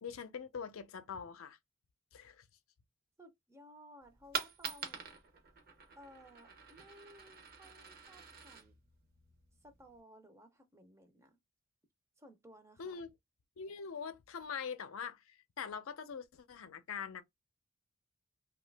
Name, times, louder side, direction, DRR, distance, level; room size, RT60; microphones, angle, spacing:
voice 1, 0.0-1.6 2.1-2.5 12.8-13.1 13.6-17.2, left 6 dB, 80° left, 0.5 m, -43 dB
voice 2, 3.2-5.2 6.0-8.8 9.6-11.4 12.2-13.0, equal, 15° right, 0.5 m, -58 dB
Coin (dropping), 4.0-10.0, right 6 dB, 45° right, 0.7 m, -46 dB
2.7 x 2.3 x 3.3 m
head